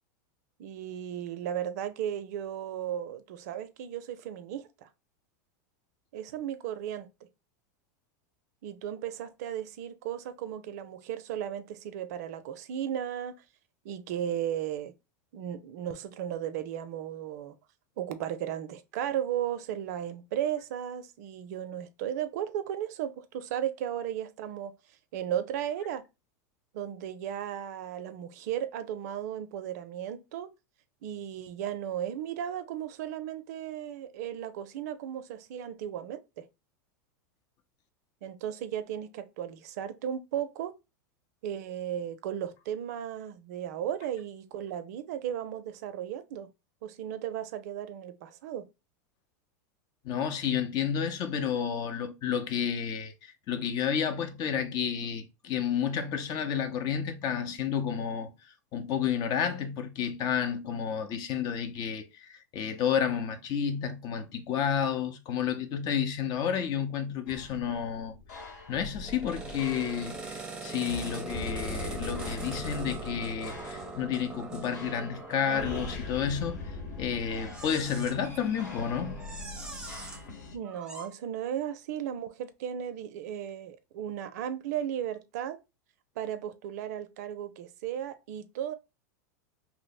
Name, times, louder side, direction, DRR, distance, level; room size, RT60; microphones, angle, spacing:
voice 1, 0.6-4.9 6.1-7.1 8.6-13.3 13.8-14.9 15.3-17.6 18.0-24.7 25.1-26.0 26.7-30.5 31.0-36.5 38.2-40.7 41.4-46.5 46.8-48.6 80.5-85.6 86.2-88.7, right 10 dB, 65° right, 0.5 m, -35 dB
voice 2, 50.0-58.3 58.7-68.2 68.7-79.2, left 8 dB, 45° left, 0.6 m, -31 dB
sound 1, 67.3-80.6, left 3 dB, 75° left, 1.2 m, -42 dB
sound 2, 69.0-76.1 77.3-78.2 78.5-78.8 79.1-80.2 80.6-81.1, right 3 dB, 10° right, 0.6 m, -41 dB
2.8 x 2.0 x 4.1 m
hypercardioid pair, 105°, 9 cm